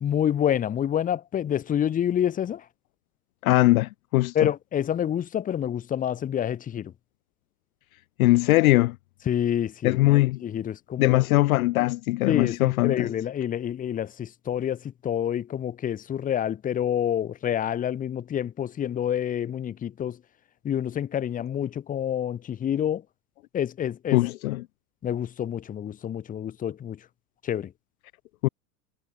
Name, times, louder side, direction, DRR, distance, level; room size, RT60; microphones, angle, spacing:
voice 1, 0.0-2.6 4.3-6.9 9.3-11.2 12.3-20.2 20.6-23.0 23.5-24.2 25.0-27.0 27.4-27.7, left 10 dB, 15° left, 1.0 m, -28 dB
voice 2, 3.4-4.5 8.2-9.0 9.8-10.4 11.0-13.1 24.1-24.7 28.4-28.5, left 19 dB, 60° left, 0.5 m, -21 dB
hypercardioid pair, 120°, 49 cm